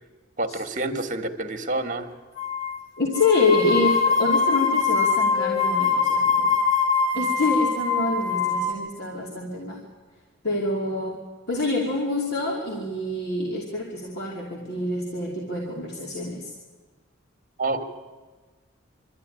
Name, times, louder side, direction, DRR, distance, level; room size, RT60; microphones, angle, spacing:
voice 1, 0.4-2.1 17.6-17.8, right 2 dB, 40° right, 8 dB, 1.7 m, -28 dB
sound 1, 2.4-2.8 3.1-8.7, left 5 dB, 85° left, 3.5 m, -23 dB
voice 2, 3.0-6.6 7.1-9.8 10.4-11.2 11.5-16.5, left 2 dB, 55° left, -2 dB, 2.8 m, -26 dB
24.0 x 13.5 x 9.9 m, 1.4 s
head